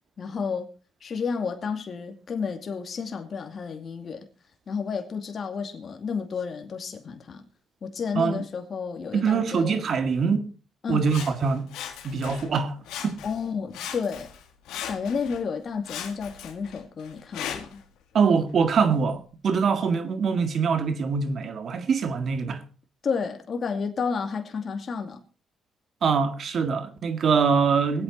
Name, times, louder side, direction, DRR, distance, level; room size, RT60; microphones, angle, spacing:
voice 1, 0.2-0.7 1.0-4.3 4.7-7.4 7.8-9.8 10.8-11.0 13.2-14.3 14.9-17.8 23.0-25.2, left 5 dB, 50° left, 2.3 m, -31 dB
voice 2, 9.1-10.5 10.9-11.8 12.0-12.8 13.0-13.2 18.1-22.6 26.0-28.0, right 5 dB, 55° right, 1.9 m, -24 dB
Sawing, 11.1-12.5 12.8-13.5 13.7-15.4 15.8-17.8 18.5-18.6, left 9 dB, 90° left, 2.0 m, -38 dB
23.5 x 8.7 x 4.0 m
cardioid pair, 90°, 0 cm